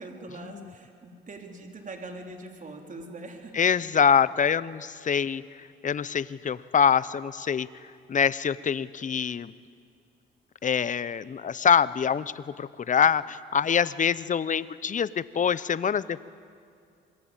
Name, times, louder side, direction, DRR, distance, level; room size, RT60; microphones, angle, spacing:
voice 1, 0.0-3.6, right 2 dB, 40° right, 3 dB, 4.1 m, -42 dB
voice 2, 3.6-5.4 5.8-7.7 8.1-9.5 10.6-16.2, left 7 dB, 40° left, 17 dB, 0.9 m, -25 dB
27.0 x 22.5 x 9.1 m, 2.4 s
cardioid pair, 90°, 20 cm